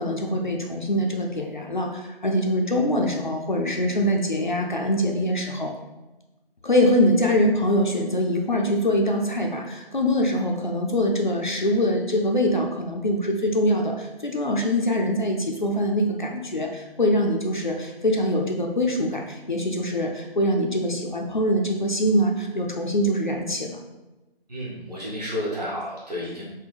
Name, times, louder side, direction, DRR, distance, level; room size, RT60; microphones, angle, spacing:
voice 1, 0.0-5.7 6.6-23.8, equal, 55° left, 1 dB, 0.4 m, -23 dB
voice 2, 24.5-26.4, equal, 40° right, -7 dB, 1.3 m, -31 dB
3.6 x 2.2 x 3.4 m, 1.1 s
figure-of-eight pair, 160°, 30 cm